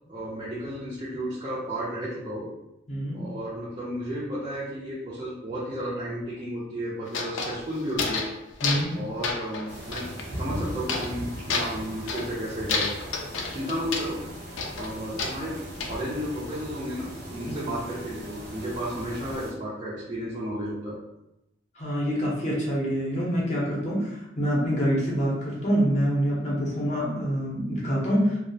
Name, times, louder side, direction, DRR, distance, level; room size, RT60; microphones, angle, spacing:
voice 1, 0.1-2.5 3.1-8.3 8.9-12.9 13.5-14.2 14.8-15.6 15.9-21.0, equal, 25° right, -8 dB, 0.4 m, -33 dB
voice 2, 2.9-3.2 8.6-8.9 17.4-17.5 21.8-28.4, equal, 35° left, -5 dB, 0.6 m, -26 dB
sound 1, 7.1-8.4 8.6-9.0 9.2-10.2 10.9-11.2 11.5-12.3 12.7-14.1 14.6-15.9, left 4 dB, 85° left, 0.4 m, -30 dB
sound 2, 9.7-19.5, equal, 60° right, 0.7 m, -39 dB
2.3 x 2.0 x 2.6 m, 0.87 s
head